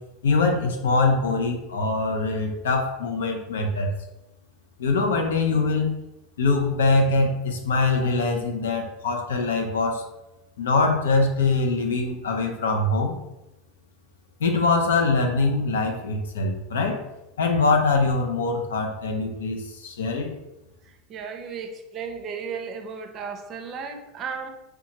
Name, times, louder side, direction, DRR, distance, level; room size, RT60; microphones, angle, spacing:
voice 1, 0.2-3.9 4.8-5.9 6.4-10.1 10.6-13.2 14.4-17.1 17.4-20.3, left 3 dB, 85° left, 3 dB, 0.4 m, -23 dB
voice 2, 20.8-24.5, right 5 dB, 45° right, 5 dB, 0.5 m, -35 dB
2.7 x 2.3 x 2.7 m, 0.95 s
hypercardioid pair, 95°, 0 cm